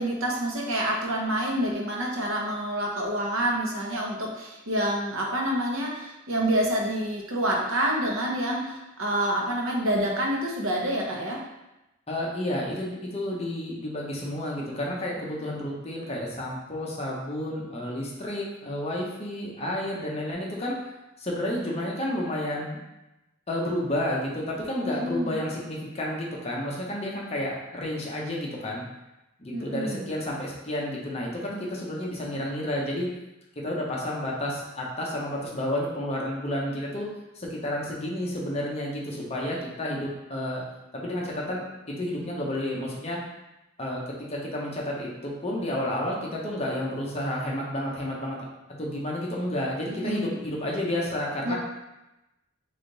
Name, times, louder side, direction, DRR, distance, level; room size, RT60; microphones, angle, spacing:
voice 1, 0.0-11.4 24.8-25.4 29.5-30.1 49.9-50.4 51.4-51.6, right 1 dB, 80° right, -1 dB, 0.9 m, -27 dB
voice 2, 12.1-20.7 21.2-22.8 23.5-28.8 29.4-33.1 33.6-37.1 37.3-40.6 40.9-41.6 42.0-43.2 43.8-44.0 44.3-48.5 48.8-51.6, left 1 dB, 30° left, -3 dB, 0.8 m, -31 dB
3.6 x 3.4 x 3.9 m, 0.97 s
head